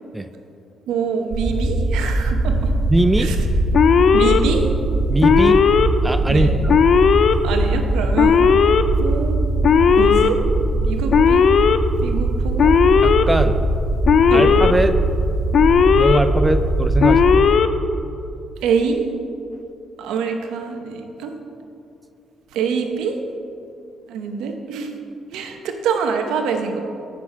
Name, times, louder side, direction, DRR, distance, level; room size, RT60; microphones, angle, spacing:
voice 1, 0.9-2.7 3.2-3.4 4.1-4.7 6.3-6.5 7.4-8.5 9.0-9.4 10.0-10.4 10.8-11.4 12.0-12.7 14.3-14.5 18.6-19.1 20.0-21.3 22.5-23.2 24.1-25.0 25.3-26.8, right 6 dB, 90° right, 5 dB, 0.9 m, -25 dB
sound 1, 1.3-17.5, right 2 dB, 55° right, 1.3 m, -21 dB
voice 2, 2.9-3.3 5.1-5.6 6.0-6.7 13.0-13.6 14.3-15.0 16.0-17.5, right 1 dB, 10° right, 10 dB, 0.4 m, -20 dB
Alarm, 3.7-4.4 5.2-5.9 6.7-7.3 8.2-8.8 9.6-10.3 11.1-11.8 12.6-13.2 14.0-14.7 15.5-16.2 17.0-17.7, left 7 dB, 60° left, 0.4 m, -15 dB
8.3 x 6.1 x 5.8 m, 2.6 s
cardioid pair, 90°, 0 cm